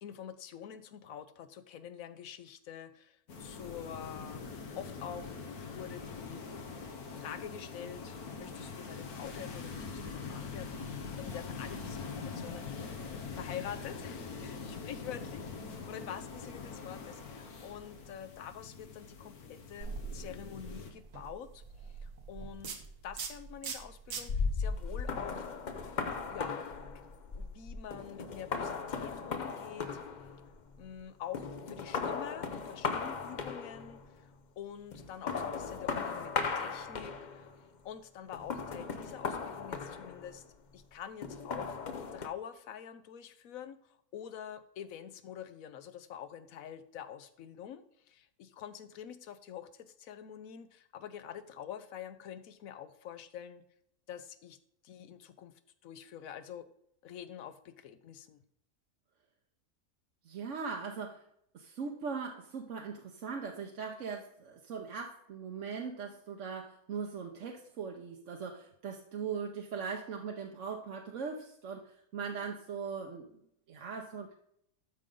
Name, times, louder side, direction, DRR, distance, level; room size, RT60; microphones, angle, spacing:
voice 1, 0.0-6.4 7.2-12.7 13.3-25.5 26.3-26.6 27.3-30.0 30.8-34.3 34.6-37.5 37.8-40.4 40.7-41.8 42.1-53.6 54.1-54.6 54.8-56.7 57.0-58.4, left 9 dB, 70° left, 12 dB, 1.1 m, -46 dB
sound 1, 3.3-20.9, left 5 dB, 90° left, 1.7 m, -43 dB
sound 2, 19.8-26.4, right 5 dB, 85° right, 1.6 m, -44 dB
sound 3, 24.3-31.0 31.3-34.1 34.9-37.6 38.3-40.5 41.2-42.3, left 5 dB, 50° left, 0.5 m, -37 dB
voice 2, 60.2-61.3 61.5-73.4 73.7-74.3, right 5 dB, 60° right, 2 dB, 1.1 m, -40 dB
12.5 x 5.2 x 3.8 m, 0.72 s
omnidirectional pair, 1.6 m